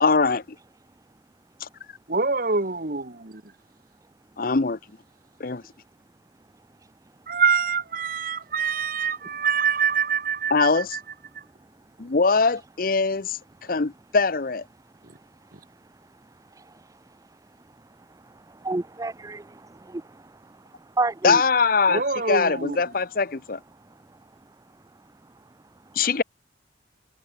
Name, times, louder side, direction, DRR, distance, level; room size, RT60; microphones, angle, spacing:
voice 1, 0.0-0.4 1.6-1.7 4.4-4.8 5.4-5.6 10.5-11.0 12.0-13.4 13.7-14.6 21.2-23.6 26.0-26.2, left 4 dB, 50° left, 0.8 m, -22 dB
voice 2, 2.1-3.4 7.3-11.0 21.9-22.8, right 5 dB, 50° right, 1.5 m, -25 dB
voice 3, 12.0-12.4 13.6-13.7 14.8-21.4 23.7-26.0, right 2 dB, 20° right, 0.5 m, -36 dB
head